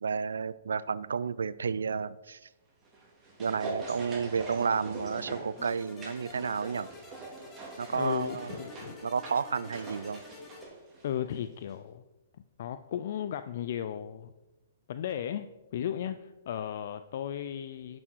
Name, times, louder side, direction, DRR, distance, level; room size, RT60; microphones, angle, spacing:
voice 1, 0.0-2.5 3.4-6.9 7.8-8.6 9.0-10.2, right 5 dB, 85° right, 18 dB, 0.4 m, -31 dB
sound 1, 2.8-11.4 11.7-11.8, right 2 dB, 20° right, 3.2 m, -43 dB
sound 2, 5.6-10.6, left 3 dB, 15° left, 1.8 m, -49 dB
voice 2, 7.9-9.0 11.0-12.0 12.6-14.3 14.9-15.5 15.7-18.0, left 9 dB, 60° left, 11 dB, 0.4 m, -35 dB
11.0 x 6.2 x 4.6 m, 1.1 s
hypercardioid pair, 130°, 0 cm